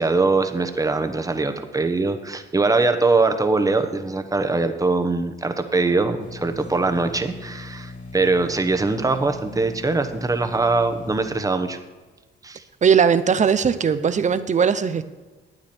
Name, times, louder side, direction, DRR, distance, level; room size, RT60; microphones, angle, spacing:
voice 1, 0.0-11.8 12.4-12.6, right 3 dB, 15° right, 1.1 m, -22 dB
sound 1, 6.2-11.4, left 2 dB, 40° left, 2.9 m, -39 dB
voice 2, 12.8-15.0, right 7 dB, 40° right, 0.7 m, -19 dB
12.0 x 9.0 x 4.4 m
cardioid pair, 90°, 20 cm